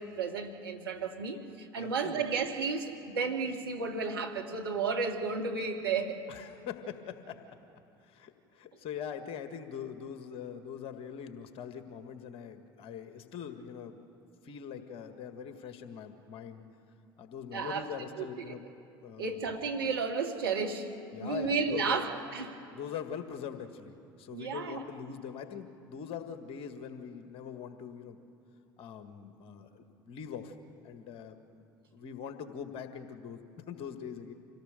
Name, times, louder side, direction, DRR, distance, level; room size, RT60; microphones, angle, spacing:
voice 1, 0.0-6.2 17.5-17.9 18.2-18.6 19.2-20.9 21.2-22.6 24.3-24.8, right 5 dB, 80° right, 2 dB, 2.1 m, -33 dB
voice 2, 1.8-2.2 6.3-7.4 8.1-14.0 14.4-16.6 17.2-18.6 19.0-19.5 21.1-22.0 22.7-28.2 28.8-30.5 30.8-31.4 31.9-34.3, left 8 dB, 50° left, 8 dB, 1.8 m, -42 dB
26.5 x 17.0 x 6.8 m, 2.9 s
figure-of-eight pair, 65°, 12 cm